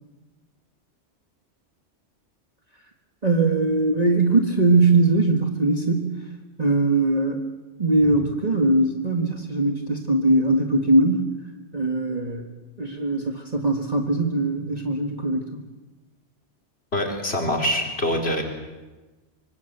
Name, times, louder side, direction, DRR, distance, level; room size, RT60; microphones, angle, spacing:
voice 1, 3.2-6.2 6.6-7.4 7.8-11.3 11.7-12.5 12.8-15.6, right 2 dB, 35° right, 3 dB, 1.8 m, -21 dB
voice 2, 16.9-18.4, equal, 65° left, 1 dB, 4.3 m, -24 dB
25.5 x 24.5 x 8.1 m, 1.2 s
omnidirectional pair, 1.2 m